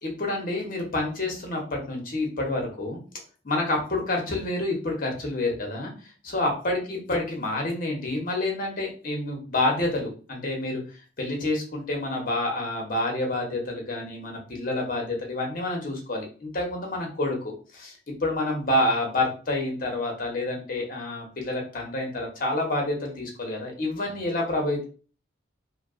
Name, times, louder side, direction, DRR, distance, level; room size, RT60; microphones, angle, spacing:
voice 1, 0.0-3.0 3.4-5.9 6.2-10.8 11.2-24.8, left 2 dB, 45° left, 1 dB, 0.7 m, -28 dB
2.6 x 2.2 x 2.4 m, 0.38 s
head